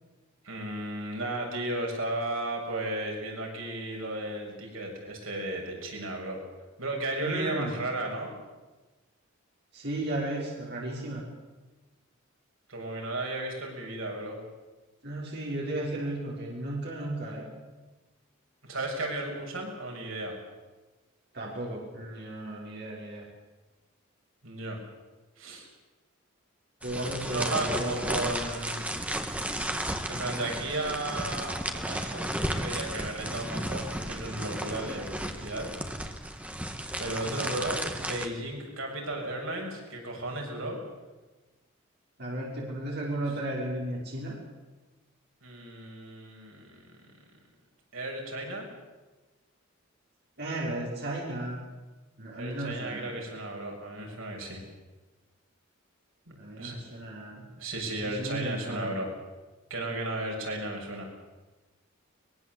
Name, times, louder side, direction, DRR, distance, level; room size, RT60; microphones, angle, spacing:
voice 1, 0.4-6.4 6.8-8.3 12.7-14.4 18.6-20.3 24.4-24.8 25.4-25.7 27.3-28.9 30.1-35.7 37.0-40.8 45.4-46.8 47.9-48.7 52.4-54.6 56.6-56.8 57.6-59.1 59.7-61.1, right 2 dB, 80° right, 0 dB, 6.9 m, -34 dB
voice 2, 7.2-7.8 9.7-11.2 15.0-17.5 21.3-23.2 26.8-28.3 37.2-37.5 42.2-44.4 50.4-51.6 52.2-53.2 56.3-57.5 58.0-59.0, right 1 dB, 55° right, -3 dB, 5.8 m, -34 dB
sound 1, 26.8-38.3, right 1 dB, 5° right, 1.8 m, -34 dB
23.0 x 22.0 x 8.1 m, 1.2 s
head